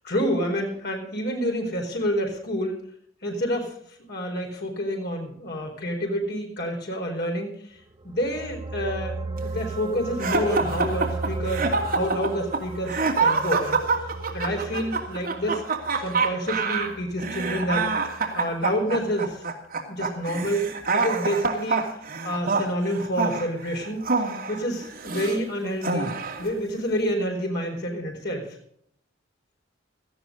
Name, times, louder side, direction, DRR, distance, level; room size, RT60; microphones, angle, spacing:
voice 1, 0.0-2.8 3.2-3.8 4.1-7.5 8.0-13.8 14.3-15.6 16.0-17.9 18.3-19.4 19.9-21.8 22.2-24.0 24.5-26.1 26.4-28.6, equal, 55° left, 1 dB, 4.5 m, -28 dB
sound 1, 7.9-18.6 19.0-19.1, right 3 dB, 25° right, 1.0 m, -36 dB
sound 2, 10.2-25.4 25.8-26.5, right 4 dB, 50° right, 2.6 m, -26 dB
17.5 x 14.0 x 3.9 m, 0.66 s
head